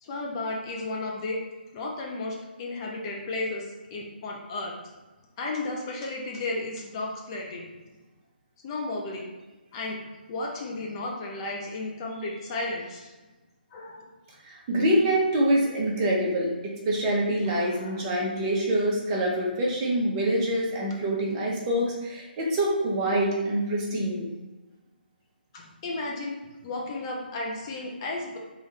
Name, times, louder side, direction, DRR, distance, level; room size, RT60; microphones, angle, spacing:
voice 1, 0.0-1.4 1.7-4.7 5.4-7.7 8.6-9.3 9.7-10.0 10.3-13.1 13.7-14.1 17.5-18.0 25.5-26.4 26.6-28.4, left 2 dB, 30° left, -1 dB, 0.6 m, -33 dB
voice 2, 14.4-24.2, right 1 dB, 25° right, -3 dB, 0.9 m, -25 dB
3.6 x 3.3 x 3.3 m, 1.2 s
figure-of-eight pair, 150°, 6 cm